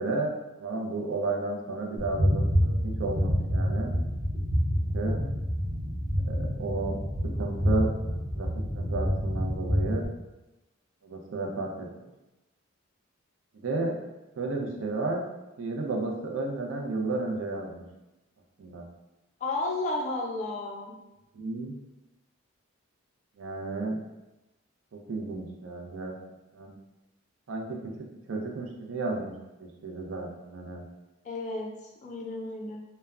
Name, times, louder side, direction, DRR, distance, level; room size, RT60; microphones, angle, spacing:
voice 1, 0.0-3.9 4.8-5.2 6.2-7.0 7.4-7.9 8.3-8.5 8.7-10.1 11.0-11.9 13.6-14.0 14.4-15.2 15.6-17.8 18.6-18.8 21.3-21.7 23.4-24.0 24.9-26.1 26.5-26.8 27.5-27.8 28.3-29.3 29.6-30.8, right 3 dB, 65° right, 1 dB, 0.5 m, -32 dB
sound 1, 2.0-10.0, equal, 5° right, 0.7 m, -27 dB
voice 2, 19.4-21.0 31.2-32.8, left 2 dB, 35° left, -1 dB, 0.4 m, -33 dB
2.2 x 2.1 x 3.4 m, 1.0 s
head